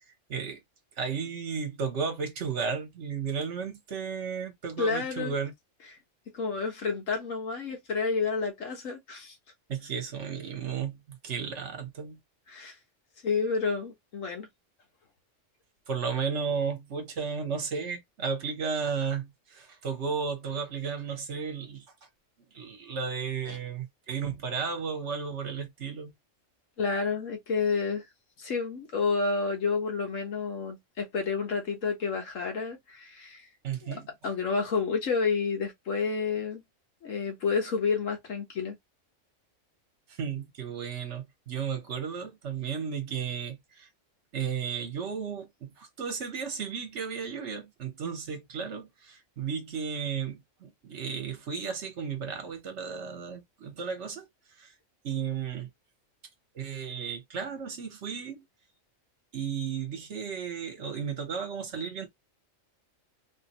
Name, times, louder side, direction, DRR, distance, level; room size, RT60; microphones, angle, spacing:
voice 1, 0.3-0.6 1.0-5.5 9.7-12.2 15.9-21.8 22.5-26.1 33.6-34.1 40.2-43.9 44.3-54.3 54.6-54.7 55.0-55.7 56.5-58.5 59.3-62.1, right 6 dB, 65° right, 1.3 m, -34 dB
voice 2, 4.8-5.3 6.3-9.4 12.5-12.7 13.2-14.5 23.5-23.6 26.8-28.1 28.4-33.4 33.8-33.9 34.2-36.6 37.0-38.8, left 5 dB, 85° left, 1.6 m, -30 dB
3.2 x 2.6 x 2.9 m
omnidirectional pair, 1.3 m